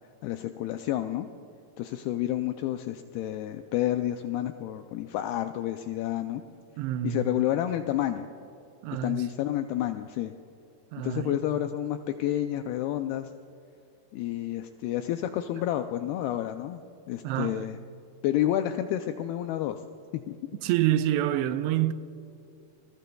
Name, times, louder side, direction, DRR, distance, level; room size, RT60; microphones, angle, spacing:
voice 1, 0.2-1.3 1.8-6.4 7.0-8.3 9.0-10.3 11.0-13.3 14.1-16.8 17.1-17.8 18.2-19.8 20.1-20.4, left 12 dB, 85° left, 2.2 m, -30 dB
voice 2, 6.8-7.4 8.8-9.3 10.9-11.4 17.2-17.7 20.6-21.9, right 12 dB, 85° right, 2.7 m, -27 dB
28.0 x 20.5 x 2.3 m
omnidirectional pair, 5.0 m